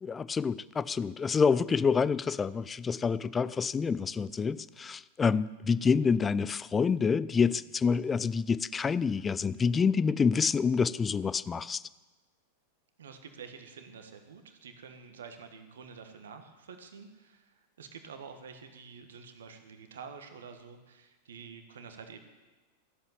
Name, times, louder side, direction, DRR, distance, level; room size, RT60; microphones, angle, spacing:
voice 1, 0.0-11.8, left 5 dB, 20° left, 0.4 m, -27 dB
voice 2, 13.0-22.2, right 6 dB, 65° right, 1.5 m, -48 dB
14.0 x 8.1 x 8.9 m
figure-of-eight pair, 90°, 0 cm